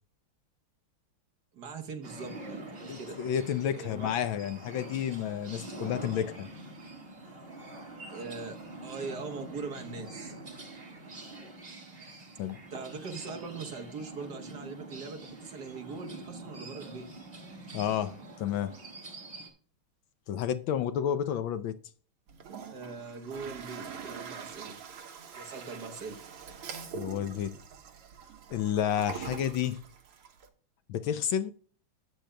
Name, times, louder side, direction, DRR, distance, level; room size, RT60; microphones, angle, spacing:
voice 1, 1.5-3.3 3.7-4.1 8.1-8.6 8.8-10.4 12.7-17.1 22.7-24.8 25.3-26.2, right 4 dB, 55° right, 1.6 m, -41 dB
sound 1, 2.0-19.5, right 2 dB, 30° right, 1.7 m, -45 dB
voice 2, 2.9-6.5 12.4-12.6 17.7-18.8 20.3-21.8 26.9-27.6 28.5-29.8 30.9-31.5, left 9 dB, 75° left, 1.3 m, -31 dB
Toilet flush, 22.3-30.5, right 6 dB, 80° right, 2.0 m, -44 dB
12.5 x 8.3 x 2.2 m
omnidirectional pair, 2.4 m